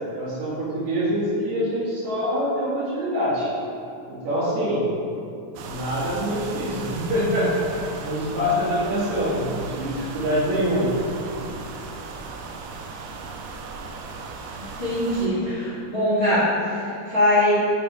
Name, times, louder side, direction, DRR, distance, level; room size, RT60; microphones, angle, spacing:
voice 1, 0.1-3.5 4.1-4.8 5.5-7.5 8.0-10.9, equal, 65° right, -9 dB, 3.0 m, -25 dB
sound 1, 5.6-15.3, right 4 dB, 80° right, 2.0 m, -37 dB
voice 2, 14.5-17.5, left 1 dB, 30° left, -12 dB, 1.3 m, -22 dB
8.6 x 5.3 x 3.4 m, 2.5 s
omnidirectional pair, 3.7 m